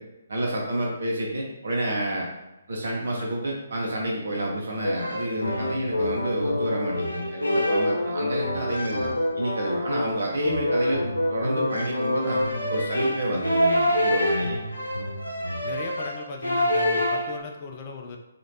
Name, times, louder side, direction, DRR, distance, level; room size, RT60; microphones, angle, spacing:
voice 1, 0.3-2.3 2.7-12.4 12.7-14.6, right 1 dB, 65° right, -2 dB, 0.8 m, -29 dB
sound 1, 4.8-17.4, left 1 dB, 90° left, 0.6 m, -26 dB
voice 2, 15.6-18.2, left 4 dB, 35° left, 2 dB, 0.4 m, -37 dB
3.1 x 2.5 x 2.6 m, 0.99 s
figure-of-eight pair, 135°, 0 cm